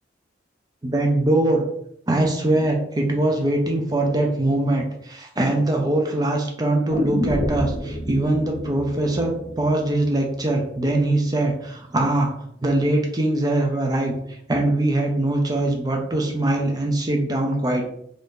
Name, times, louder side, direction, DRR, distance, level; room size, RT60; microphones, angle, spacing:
voice 1, 0.8-1.6 2.1-12.3 12.6-17.9, right 1 dB, 20° right, 1 dB, 0.5 m, -22 dB
sound 1, 6.9-10.9 11.2-11.3, left 1 dB, 45° left, 0.8 m, -29 dB
2.8 x 2.6 x 3.6 m, 0.74 s
head